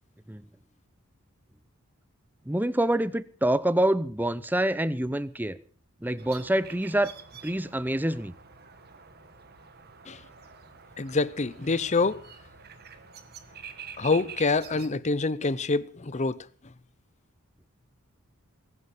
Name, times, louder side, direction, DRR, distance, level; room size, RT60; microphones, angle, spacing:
voice 1, 2.5-5.6 6.0-7.1 7.4-8.3, right 1 dB, 10° right, 0.7 m, -26 dB
sound 1, 6.2-14.9, right 6 dB, 45° right, 1.9 m, -47 dB
voice 2, 11.0-12.2 14.0-16.4, left 3 dB, 30° left, 0.7 m, -26 dB
20.5 x 9.9 x 6.6 m
head